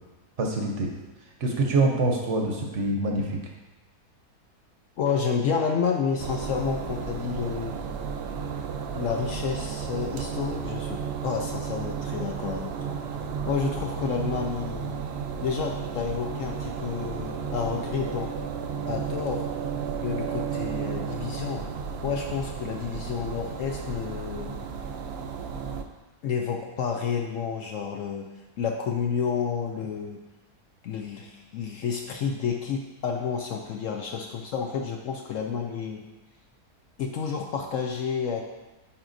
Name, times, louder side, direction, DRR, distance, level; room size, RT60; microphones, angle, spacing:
voice 1, 0.4-0.9 1.4-3.4, right 2 dB, 55° right, 1 dB, 1.0 m, -25 dB
voice 2, 5.0-7.8 8.9-13.0 13.4-15.0 15.4-18.3 18.8-19.5 20.0-21.7 22.0-24.6 26.2-28.3 28.6-30.2 30.8-36.0 37.0-38.4, left 6 dB, 70° left, 2 dB, 0.8 m, -30 dB
sound 1, 6.2-25.8, right 6 dB, 85° right, 0.5 m, -33 dB
9.8 x 4.4 x 2.6 m, 1.1 s
omnidirectional pair, 1.7 m